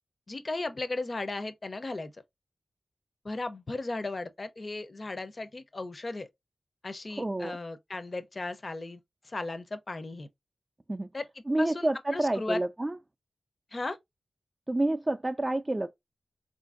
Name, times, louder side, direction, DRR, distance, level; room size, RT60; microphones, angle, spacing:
voice 1, 0.3-2.1 3.2-6.3 6.8-9.0 9.3-10.3 11.1-11.3 11.6-12.6 13.7-14.0, left 2 dB, 50° left, 0.5 m, -36 dB
voice 2, 7.2-7.6 10.9-11.1 11.5-13.0 14.7-15.9, right 1 dB, 30° right, 0.3 m, -29 dB
3.7 x 2.5 x 2.4 m
cardioid pair, 40°, 0 cm